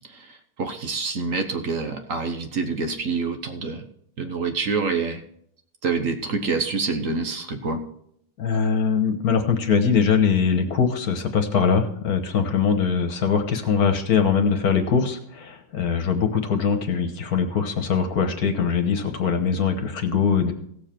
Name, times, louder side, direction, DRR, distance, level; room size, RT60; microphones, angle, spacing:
voice 1, 0.6-3.8 4.2-5.2 5.8-7.8, right 4 dB, 55° right, 6 dB, 1.3 m, -26 dB
voice 2, 8.4-20.5, left 6 dB, 60° left, 7 dB, 1.6 m, -22 dB
16.5 x 7.3 x 4.4 m, 0.69 s
omnidirectional pair, 1.8 m